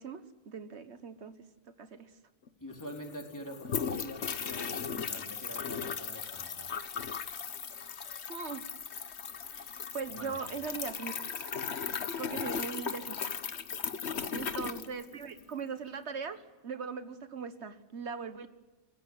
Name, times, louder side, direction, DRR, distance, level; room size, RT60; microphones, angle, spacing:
voice 1, 0.0-1.4 1.8-2.1 8.3-8.7 9.5-11.2 12.2-13.3 14.3-18.5, right 5 dB, 90° right, 11 dB, 1.6 m, -40 dB
sound 1, 2.5-2.6 2.7-15.5, left 6 dB, 80° left, 1.4 m, -37 dB
voice 2, 2.6-6.7 10.2-10.6 14.1-14.4, equal, 15° left, 2 dB, 4.1 m, -45 dB
30.0 x 16.0 x 9.5 m, 1.2 s
omnidirectional pair, 1.1 m